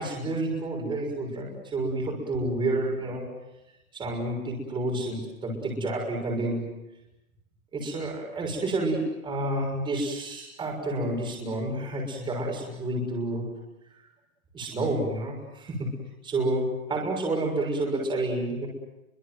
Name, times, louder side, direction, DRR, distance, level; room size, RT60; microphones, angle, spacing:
voice 1, 0.0-3.2 3.9-6.7 7.7-13.5 14.5-15.9 16.2-18.7, right 2 dB, 10° right, 0 dB, 6.4 m, -29 dB
29.5 x 24.0 x 7.9 m, 0.92 s
hypercardioid pair, 155°, 42 cm